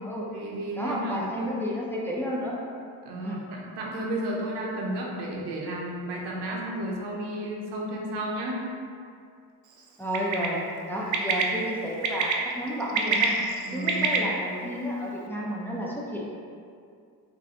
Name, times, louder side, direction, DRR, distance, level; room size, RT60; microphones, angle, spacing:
voice 1, 0.0-1.6 3.0-8.6 13.6-14.3, right 1 dB, 85° right, -2 dB, 0.8 m, -33 dB
voice 2, 0.8-2.6 3.1-3.4 10.0-10.6 10.9-13.4 13.7-16.2, equal, 5° left, -5 dB, 0.5 m, -31 dB
Bird, 10.1-10.5 11.1-11.4 12.0-12.3 12.8-14.2, right 5 dB, 50° right, 0.5 m, -24 dB
3.9 x 2.6 x 2.8 m, 2.3 s
cardioid pair, 90°, 41 cm